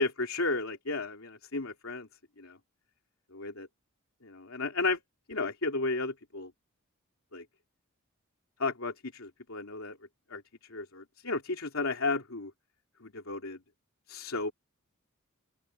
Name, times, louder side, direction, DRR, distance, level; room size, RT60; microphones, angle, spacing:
voice 1, 0.0-2.1 2.4-2.6 3.3-3.7 4.2-5.0 5.3-6.5 7.3-7.4 8.6-10.0 10.3-10.4 10.7-12.5 13.0-13.6 14.1-14.5, left 3 dB, 80° left, 2.9 m, -33 dB
open air
head